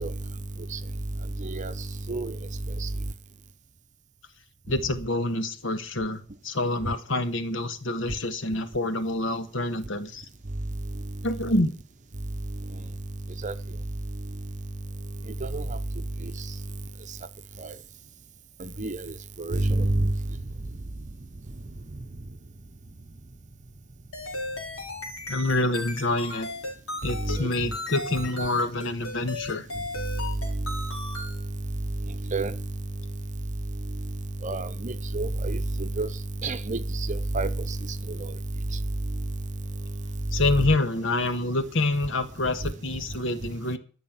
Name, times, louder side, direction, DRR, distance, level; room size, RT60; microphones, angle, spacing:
voice 1, 4.7-10.2 11.2-11.7 25.3-26.5 27.0-29.7 40.3-43.8, left 2 dB, 65° left, 1.6 m, -27 dB
voice 2, 19.4-20.1 27.3-27.4 32.3-32.5 34.4-35.6 36.0-36.1 36.4-36.8 37.1-37.5, right 2 dB, 35° right, 0.8 m, -27 dB
sound 1, 24.1-31.4, left 1 dB, 85° left, 4.6 m, -35 dB
13.0 x 6.4 x 8.8 m
head